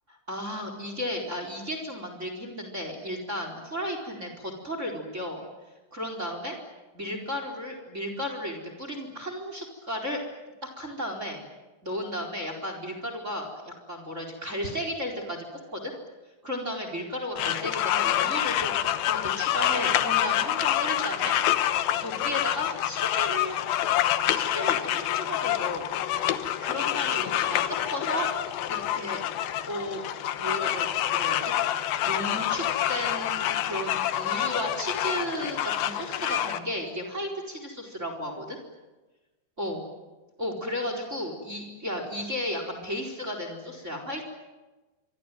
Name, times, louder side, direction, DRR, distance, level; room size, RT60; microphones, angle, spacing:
voice 1, 0.1-5.4 5.9-6.6 6.9-10.2 10.8-11.4 11.8-15.4 15.7-16.0 16.4-21.4 21.9-23.6 24.3-25.9 26.6-28.3 28.7-29.2 29.7-30.0 30.3-31.7 32.0-38.6 39.6-39.8 40.4-44.3, equal, 15° right, 5 dB, 4.2 m, -34 dB
sound 1, 17.4-36.6, left 12 dB, 70° left, 2.4 m, -27 dB
26.0 x 23.5 x 9.3 m, 1.2 s
omnidirectional pair, 5.3 m